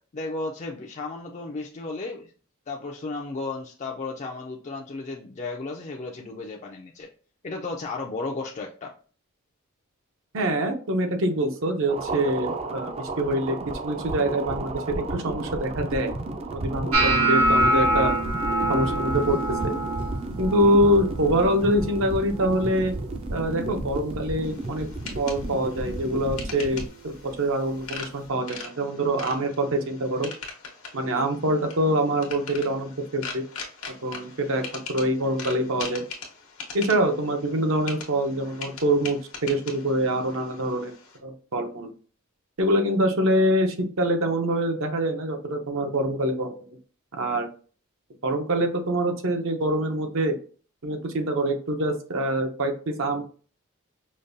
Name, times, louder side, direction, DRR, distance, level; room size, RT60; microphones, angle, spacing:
voice 1, 0.1-2.3 2.7-7.1 7.4-8.9, left 3 dB, 35° left, 0 dB, 0.4 m, -34 dB
voice 2, 10.3-13.6 13.8-16.1 16.5-18.1 18.7-19.7 20.4-22.9 23.3-24.9 25.1-30.3 30.9-33.4 34.0-34.6 34.9-36.0 36.7-40.9 41.2-41.9 42.6-46.5 47.2-47.5 48.2-50.3 50.8-53.2, right 1 dB, 65° right, 5 dB, 0.7 m, -25 dB
sound 1, 11.9-26.9, right 2 dB, 30° right, 0.4 m, -33 dB
sound 2, 16.9-23.0 23.3-23.8 24.2-24.7 25.3-25.5 27.3-27.4, right 2 dB, 90° right, 1.0 m, -26 dB
sound 3, 24.4-41.2, left 5 dB, 80° left, 1.0 m, -41 dB
5.1 x 2.2 x 2.6 m, 0.40 s
head